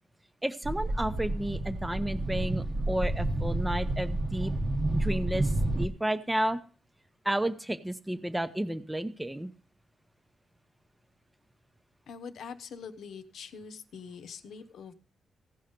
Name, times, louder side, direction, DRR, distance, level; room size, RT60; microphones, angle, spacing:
voice 1, 0.4-4.5 4.9-6.6 7.2-9.5, right 1 dB, 10° right, 9 dB, 0.7 m, -32 dB
sound 1, 0.6-5.9, right 2 dB, 35° right, 0.9 m, -30 dB
voice 2, 12.1-14.9, left 6 dB, 80° left, 10 dB, 0.9 m, -44 dB
16.0 x 5.6 x 5.1 m, 0.40 s
cardioid pair, 110°, 0 cm